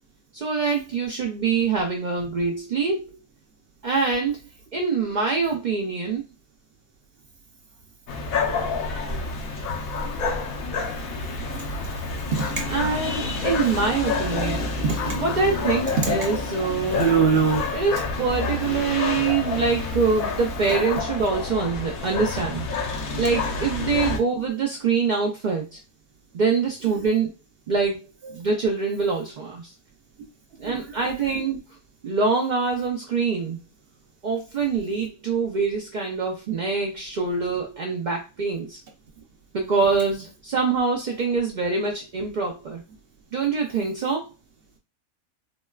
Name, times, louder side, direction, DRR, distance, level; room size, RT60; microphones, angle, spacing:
voice 1, 0.3-3.1 3.8-4.4 4.7-6.2 12.7-14.7 15.1-17.0 17.7-22.7 23.2-25.8 26.3-27.3 27.7-28.0 28.3-29.7 30.6-31.6 32.0-33.6 34.2-38.8 39.5-42.8 43.3-44.3, right 4 dB, 80° right, 1 dB, 0.4 m, -24 dB
sound 1, 8.1-24.2, left 4 dB, 85° left, 1.2 m, -28 dB
voice 2, 12.3-12.6 14.8-15.2 16.0-16.2 16.9-17.7 30.6-30.7, right 6 dB, 55° right, 2 dB, 0.7 m, -22 dB
3.9 x 2.1 x 2.3 m, 0.28 s
omnidirectional pair, 1.4 m